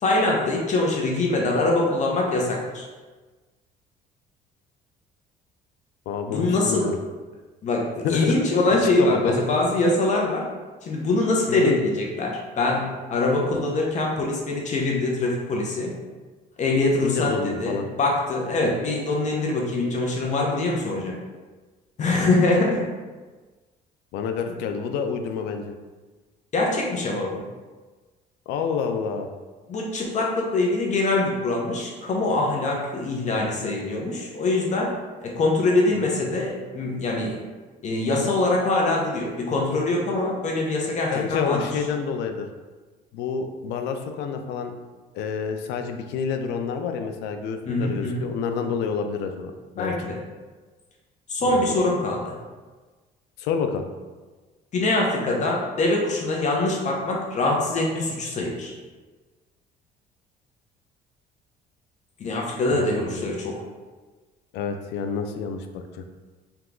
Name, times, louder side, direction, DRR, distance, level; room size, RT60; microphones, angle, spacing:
voice 1, 0.0-2.9 6.3-6.9 7.6-10.4 10.8-15.9 16.6-21.1 22.0-22.9 26.5-27.4 29.7-34.9 35.2-37.4 37.8-41.7 47.7-48.3 49.8-50.2 51.3-52.3 54.7-58.7 62.2-63.6, left 2 dB, 45° left, -1 dB, 0.7 m, -23 dB
voice 2, 6.1-6.9 8.0-8.4 8.7-9.4 11.5-11.8 17.0-17.9 24.1-25.6 28.5-29.3 35.9-36.1 41.1-42.5 43.1-44.7 45.1-49.9 51.4-51.7 53.4-53.9 62.7-63.3 64.5-66.0, left 6 dB, 85° left, 6 dB, 0.4 m, -28 dB
3.5 x 2.9 x 3.7 m, 1.3 s
cardioid pair, 110°, 17 cm